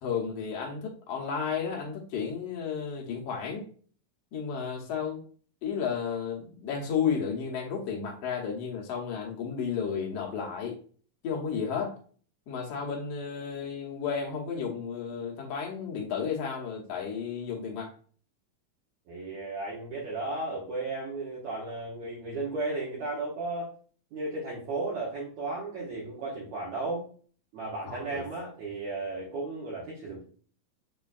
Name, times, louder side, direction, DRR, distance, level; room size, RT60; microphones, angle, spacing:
voice 1, 0.0-3.7 4.3-5.2 5.6-10.8 11.2-12.0 12.5-17.9 27.9-28.2, left 6 dB, 70° left, -1 dB, 1.5 m, -33 dB
voice 2, 19.1-23.7 24.1-27.1 27.5-30.2, right 2 dB, 60° right, -6 dB, 2.4 m, -34 dB
6.7 x 3.3 x 2.3 m, 0.43 s
omnidirectional pair, 3.9 m